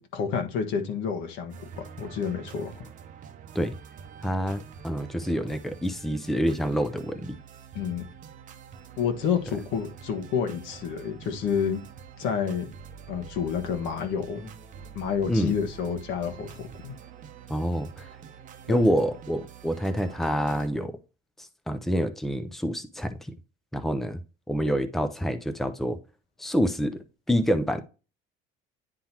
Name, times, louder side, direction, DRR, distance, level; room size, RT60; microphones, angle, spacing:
voice 1, 0.0-2.9 7.7-8.0 9.0-11.8 12.2-12.7 13.1-14.5 14.9-16.9 18.7-18.8, left 7 dB, 65° left, 1.5 m, -29 dB
sound 1, 1.5-20.7, right 7 dB, 40° right, 0.8 m, -46 dB
voice 2, 4.2-7.4 15.3-15.5 17.5-18.1 18.7-20.9 21.7-23.1 23.7-24.2 24.5-26.0 26.4-27.0 27.3-27.8, equal, ahead, 0.5 m, -27 dB
10.0 x 3.8 x 2.9 m
cardioid pair, 150°, 20 cm